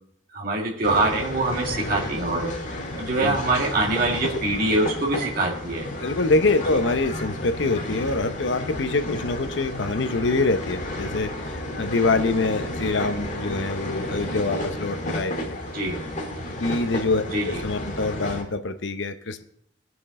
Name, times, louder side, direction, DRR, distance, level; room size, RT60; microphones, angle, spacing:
voice 1, 0.3-2.5 3.0-5.8 15.7-16.0 17.3-17.6, right 2 dB, 50° right, -2 dB, 2.0 m, -24 dB
sound 1, 0.8-18.4, left 1 dB, 40° left, 1.7 m, -32 dB
voice 2, 6.0-15.6 16.6-19.4, left 3 dB, 80° left, 9 dB, 0.8 m, -25 dB
18.0 x 6.2 x 3.7 m, 0.69 s
head